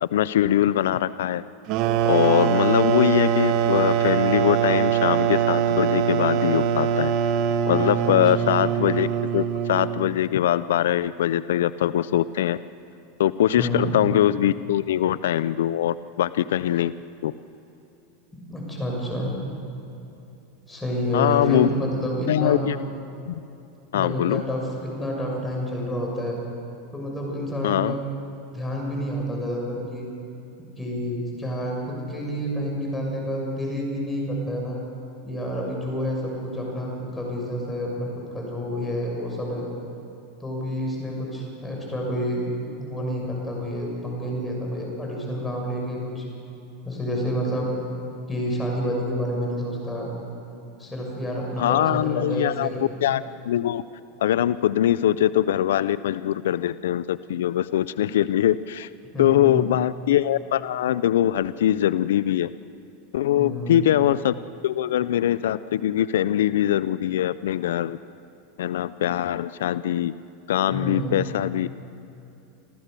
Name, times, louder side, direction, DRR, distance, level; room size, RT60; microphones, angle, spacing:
voice 1, 0.0-1.4 2.0-7.1 7.7-9.1 9.3-12.6 13.2-16.9 17.2-17.3 21.1-21.7 22.3-22.8 23.3-23.4 23.9-24.4 27.6-27.9 51.6-52.7 53.0-53.8 54.2-58.9 59.2-62.5 63.1-64.3 64.6-68.0 68.6-70.1 70.5-71.7, left 11 dB, 85° left, 16 dB, 0.4 m, -22 dB
sound 1, 1.7-10.2, right 9 dB, 55° right, 1.2 m, -23 dB
voice 2, 13.6-14.0 18.5-19.3 20.7-22.6 23.9-26.4 26.9-28.0 28.5-30.1 30.6-34.8 35.2-39.7 40.4-42.5 42.8-46.3 46.8-47.7 48.3-50.1 50.8-52.8 59.1-59.8 63.4-63.9 70.7-71.2, equal, 10° left, -1 dB, 6.8 m, -29 dB
27.0 x 15.0 x 6.8 m, 2.8 s
supercardioid pair, 120°, 0 cm